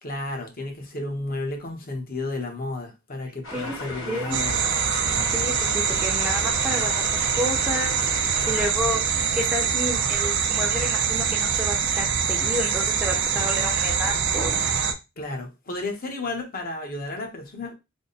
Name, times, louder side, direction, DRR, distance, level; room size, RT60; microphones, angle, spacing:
voice 1, 0.0-4.6 15.2-17.7, left 2 dB, 45° left, 0.9 m, -32 dB
sound 1, 3.4-8.7, left 2 dB, 65° left, 1.5 m, -35 dB
voice 2, 4.1-4.4 5.3-7.1 7.4-7.9 8.5-9.0 9.3-14.7, equal, 5° right, 0.7 m, -30 dB
sound 2, 4.3-14.9, right 7 dB, 60° right, 0.5 m, -24 dB
3.5 x 2.2 x 4.0 m
head